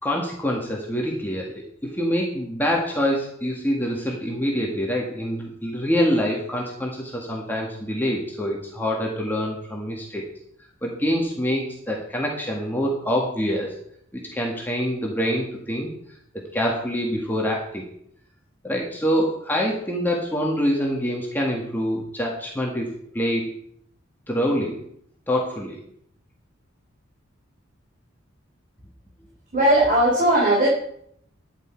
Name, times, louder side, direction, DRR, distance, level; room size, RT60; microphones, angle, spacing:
voice 1, 0.0-10.2 10.8-13.7 14.1-15.9 16.5-17.8 18.6-23.5 24.3-24.8 25.3-25.8, equal, 10° left, -2 dB, 1.8 m, -25 dB
voice 2, 29.5-30.7, right 1 dB, 40° right, -5 dB, 4.2 m, -18 dB
13.0 x 9.8 x 4.6 m, 0.69 s
head